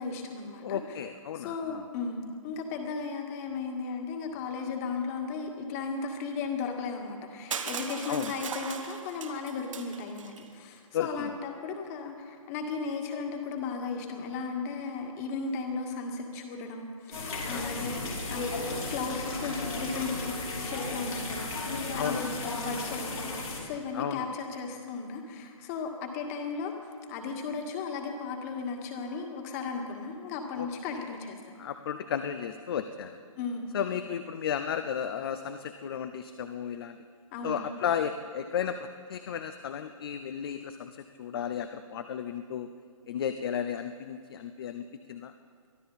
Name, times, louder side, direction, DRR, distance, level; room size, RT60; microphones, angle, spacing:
voice 1, 0.0-0.8 1.4-18.0 18.3-18.5 18.9-26.7 27.1-31.5 33.4-33.7 37.3-37.6, left 4 dB, 25° left, 4 dB, 1.9 m, -35 dB
voice 2, 0.6-1.8 8.1-8.3 10.9-11.4 17.5-17.7 17.9-18.1 21.9-22.4 23.9-24.3 30.6-30.7 31.6-33.2 33.7-37.0 37.4-42.7 43.1-45.3, left 8 dB, 45° left, 9 dB, 0.7 m, -34 dB
Crushing, 7.5-10.4, right 6 dB, 65° right, 1.6 m, -38 dB
sound 1, 17.1-23.6, left 3 dB, 75° left, 5.1 m, -35 dB
Wind instrument woodwind instrument, 17.8-22.0, right 5 dB, 20° right, 1.0 m, -47 dB
23.5 x 13.5 x 4.2 m, 2.1 s
hypercardioid pair, 150°, 18 cm